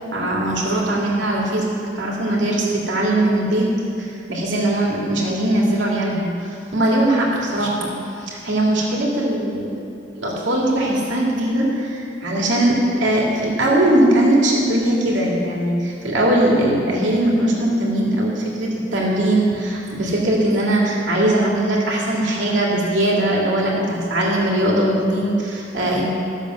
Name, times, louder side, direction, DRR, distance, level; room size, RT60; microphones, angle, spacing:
voice 1, 0.1-3.7 4.0-7.9 8.2-9.7 10.2-26.1, right 1 dB, 80° right, -3 dB, 2.7 m, -20 dB
14.0 x 7.6 x 6.4 m, 2.5 s
head